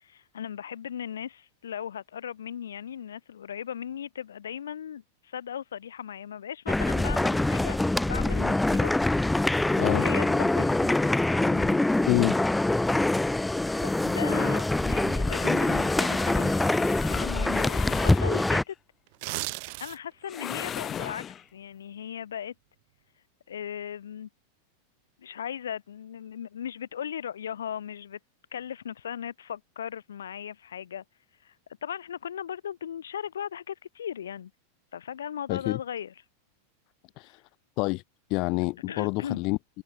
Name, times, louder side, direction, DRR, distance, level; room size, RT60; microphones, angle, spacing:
voice 1, 0.0-8.9 9.8-10.9 13.6-16.5 17.1-18.7 19.8-22.5 23.5-24.3 25.2-28.2 28.5-31.0 31.4-31.5 31.8-34.5 34.9-36.1 38.9-39.4, left 9 dB, 65° left, 5.9 m, -37 dB
sound 1, 6.7-18.6, left 2 dB, 5° left, 0.4 m, -24 dB
voice 2, 9.8-10.4 11.4-12.4 35.5-35.8 37.2-37.4 37.8-38.0 38.3-39.8, left 26 dB, 40° left, 1.4 m, -28 dB
sound 2, 13.9-18.7 20.2-21.4, left 9 dB, 25° left, 1.4 m, -37 dB
sound 3, 19.1-20.2 20.6-20.8, right 30 dB, 45° right, 0.6 m, -35 dB
figure-of-eight pair, 90°, 0 cm